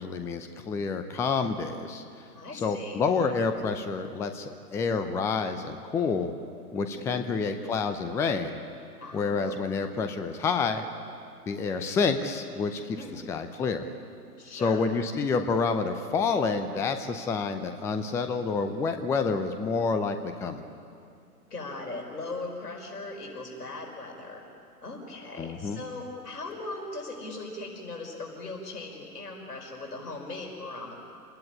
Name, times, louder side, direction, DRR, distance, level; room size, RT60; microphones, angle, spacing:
voice 1, 0.0-2.0 2.5-6.3 6.7-8.6 9.1-10.8 11.5-13.8 14.5-20.6 25.4-25.8, left 4 dB, 5° left, 8 dB, 0.6 m, -28 dB
voice 2, 2.3-3.0 6.8-7.4 9.0-9.6 13.0-13.2 14.4-14.8 21.5-24.4 24.8-30.9, left 2 dB, 75° left, 0 dB, 5.4 m, -39 dB
28.5 x 19.5 x 9.9 m, 2.5 s
figure-of-eight pair, 120°, 47 cm